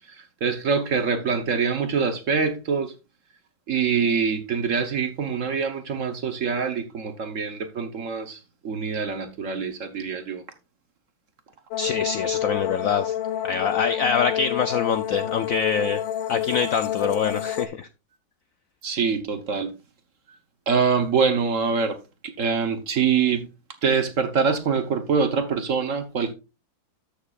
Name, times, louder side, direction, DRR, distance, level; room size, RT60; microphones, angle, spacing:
voice 1, 0.1-2.9 3.7-10.4 18.8-19.7 20.7-22.0 22.2-23.5 23.8-26.3, right 5 dB, 50° right, 1.1 m, -24 dB
sound 1, 11.7-17.7, left 11 dB, 90° left, 1.5 m, -28 dB
voice 2, 11.8-13.1 13.4-16.0 16.3-17.9, left 6 dB, 70° left, 0.8 m, -25 dB
13.0 x 6.6 x 2.4 m
omnidirectional pair, 2.0 m